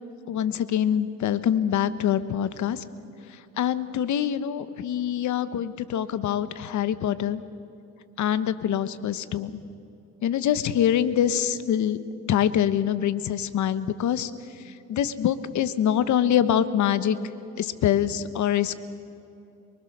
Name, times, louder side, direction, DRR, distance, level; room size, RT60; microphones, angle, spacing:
voice 1, 0.3-2.8 3.6-7.4 8.2-9.5 10.2-12.0 12.3-14.3 14.9-17.2 17.6-18.7, left 10 dB, 75° left, 13 dB, 1.1 m, -24 dB
24.0 x 23.5 x 6.6 m, 2.8 s
cardioid pair, 90°, 30 cm